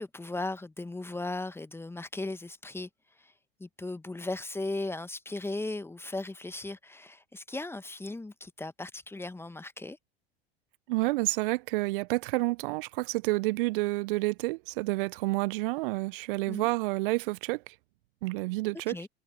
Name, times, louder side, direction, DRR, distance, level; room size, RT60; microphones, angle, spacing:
voice 1, 0.0-2.9 3.2-3.3 3.6-10.0 16.5-16.7 18.9-19.1, left 2 dB, 10° left, 1.3 m, -37 dB
voice 2, 10.9-17.6 18.2-19.0, right 23 dB, 55° right, 1.0 m, -29 dB
open air
figure-of-eight pair, 80°, 31 cm